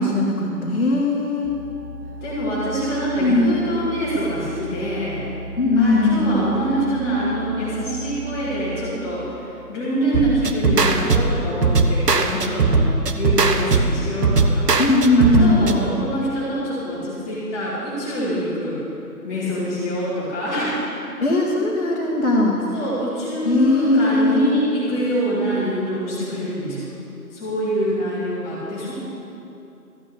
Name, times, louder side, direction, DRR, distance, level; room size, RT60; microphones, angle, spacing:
voice 1, 0.0-1.5 3.2-3.5 5.6-6.6 14.8-15.9 21.2-22.6 23.4-24.4, left 2 dB, 45° left, -5 dB, 1.8 m, -19 dB
sound 1, 1.4-8.9, right 1 dB, 85° left, 2.0 m, -36 dB
voice 2, 2.2-5.2 5.7-12.9 13.1-14.7 15.2-18.8 19.2-20.9 22.7-26.8 27.3-28.9, equal, 10° left, -10 dB, 2.3 m, -25 dB
sound 2, 10.1-15.8, right 3 dB, 75° right, 1.2 m, -19 dB
14.0 x 9.3 x 6.9 m, 2.8 s
figure-of-eight pair, 160°, 48 cm